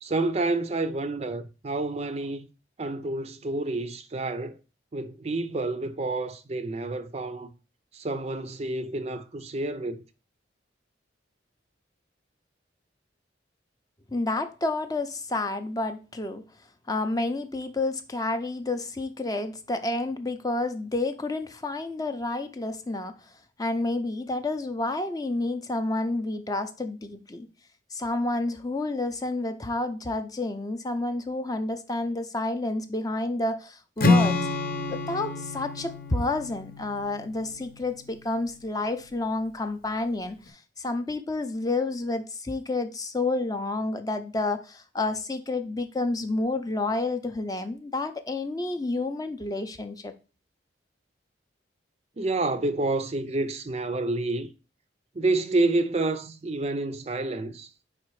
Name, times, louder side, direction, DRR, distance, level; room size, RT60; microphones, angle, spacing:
voice 1, 0.0-2.5 2.8-4.6 4.9-7.5 7.9-10.0 52.2-54.5 55.1-57.7, right 2 dB, 35° right, 0.4 m, -29 dB
voice 2, 14.1-16.4 16.9-23.3 23.6-27.5 27.9-34.4 34.9-50.1, left 2 dB, 20° left, 0.5 m, -30 dB
Strum, 34.0-38.1, left 3 dB, 50° left, 0.8 m, -27 dB
4.9 x 4.2 x 4.6 m
head